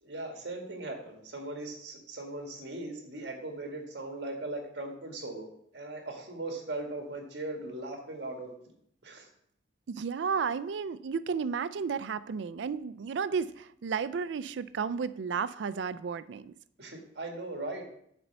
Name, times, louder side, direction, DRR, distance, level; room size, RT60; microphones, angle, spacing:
voice 1, 0.0-5.5 5.7-8.7 9.0-9.3 16.8-17.9, right 2 dB, 65° right, 2 dB, 1.8 m, -39 dB
voice 2, 9.9-16.5, right 6 dB, 80° right, 15 dB, 0.4 m, -33 dB
6.8 x 4.4 x 6.7 m, 0.69 s
head